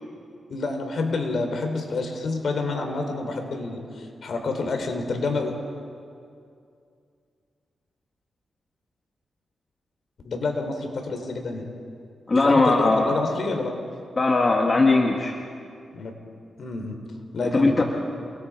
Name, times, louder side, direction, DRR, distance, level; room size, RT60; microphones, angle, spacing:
voice 1, 0.5-5.5 10.2-11.6 12.4-13.7 15.9-16.1 16.6-16.9 17.3-17.8, left 3 dB, 65° left, 4 dB, 3.5 m, -28 dB
voice 2, 12.3-13.0 14.2-15.4 17.4-17.8, left 3 dB, 35° left, 0 dB, 2.2 m, -19 dB
28.5 x 21.0 x 4.8 m, 2.4 s
cardioid pair, 70°, 0 cm